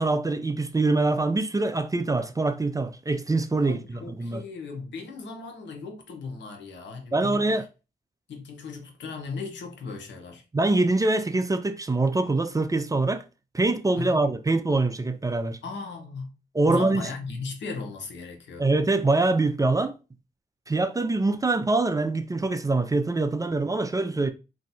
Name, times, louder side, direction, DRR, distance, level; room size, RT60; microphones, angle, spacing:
voice 1, 0.0-4.4 7.1-7.7 10.5-13.2 13.5-15.6 16.5-17.1 18.6-20.0 20.7-24.3, right 2 dB, 20° right, 0.4 m, -24 dB
voice 2, 3.6-7.5 8.3-10.4 14.0-14.3 15.6-16.3 16.6-18.7, left 4 dB, 90° left, 0.8 m, -37 dB
2.7 x 2.2 x 4.0 m
cardioid pair, 75°, 18 cm